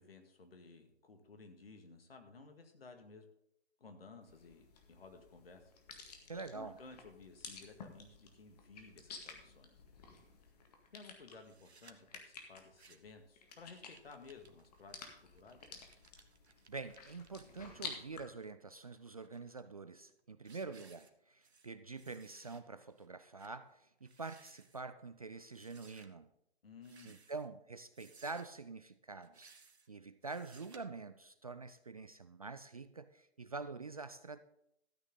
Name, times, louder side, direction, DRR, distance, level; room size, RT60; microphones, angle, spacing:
voice 1, 0.0-3.3 3.8-5.7 6.3-9.7 10.9-15.6 26.6-27.2, left 4 dB, 60° left, 2.0 m, -56 dB
sound 1, 4.3-18.2, left 5 dB, 35° left, 1.9 m, -53 dB
voice 2, 6.3-6.8 16.7-26.3 27.0-29.5 29.9-34.4, right 4 dB, 35° right, 0.4 m, -46 dB
sound 2, 11.4-11.9 12.6-13.2 13.5-17.9 18.4-19.6 20.0-20.2 20.4-21.7 22.0-22.6 23.0-23.1 23.4-23.6 24.0-24.8 25.5-26.1 26.8-27.5 27.9-28.6 29.2-29.9 30.2-30.8, right 4 dB, 70° right, 1.3 m, -63 dB
13.0 x 9.0 x 3.8 m
figure-of-eight pair, 140°, 33 cm